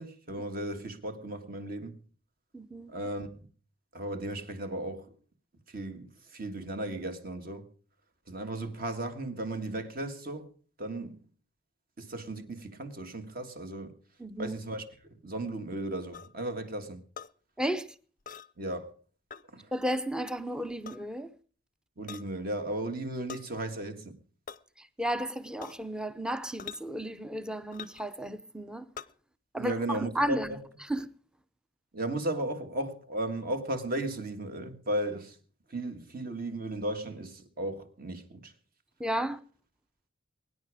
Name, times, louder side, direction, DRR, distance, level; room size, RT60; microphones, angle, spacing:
voice 1, 0.0-2.0 2.9-3.4 3.9-5.1 5.7-7.7 8.3-10.5 10.8-11.2 12.0-13.9 14.4-14.9 15.2-17.0 18.6-18.9 19.5-19.7 22.0-24.2 29.6-30.6 31.9-35.4 35.7-38.5, right 1 dB, 45° right, 1.8 m, -35 dB
voice 2, 2.5-2.9 14.2-14.6 17.6-17.9 19.7-21.3 24.8-28.9 29.5-30.6 30.8-31.1 39.0-39.4, right 1 dB, 5° right, 0.7 m, -33 dB
sound 1, 16.1-16.3 17.2-17.3 18.3-18.5 19.3-19.4 20.7-21.0 22.1-22.3 23.3-23.5 24.5-24.6 25.6-25.9 26.6-26.8 27.7-28.1 29.0-29.1, left 7 dB, 40° left, 0.6 m, -43 dB
23.0 x 10.0 x 4.9 m
head